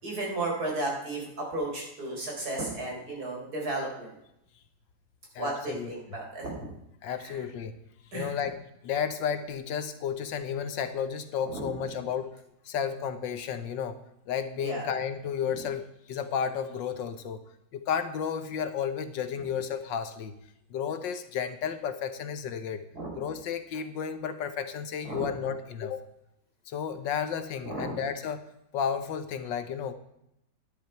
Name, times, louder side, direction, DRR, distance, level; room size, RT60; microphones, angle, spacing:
voice 1, 0.0-4.2 5.4-6.7 7.2-7.4 8.1-8.4 11.5-11.6 14.6-14.9 22.9-23.1 25.0-25.3 27.6-28.0, right 2 dB, 50° right, -2 dB, 4.6 m, -34 dB
voice 2, 5.3-5.9 7.0-7.8 8.1-8.6 8.8-12.3 12.6-14.0 14.3-17.4 17.7-20.3 20.7-22.8 23.1-26.0 26.7-28.5 28.7-29.9, left 7 dB, 75° left, 10 dB, 1.6 m, -32 dB
11.5 x 10.5 x 4.5 m, 0.81 s
omnidirectional pair, 2.0 m